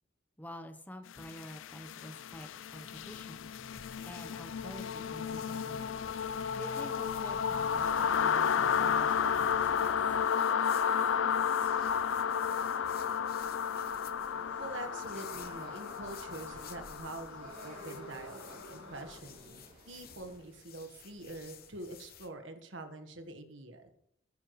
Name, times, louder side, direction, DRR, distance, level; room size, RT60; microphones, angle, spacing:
voice 1, 0.4-3.5 4.0-5.9 6.5-9.9, equal, 10° left, 7 dB, 0.9 m, -48 dB
sound 1, 1.2-19.0, left 7 dB, 70° left, 0.4 m, -32 dB
sound 2, 2.7-22.3, left 8 dB, 50° left, 0.9 m, -55 dB
sound 3, 10.9-20.4, right 1 dB, 45° right, 3.3 m, -53 dB
voice 2, 14.6-23.9, right 2 dB, 65° right, 6 dB, 1.4 m, -45 dB
14.5 x 9.8 x 3.2 m, 0.75 s
head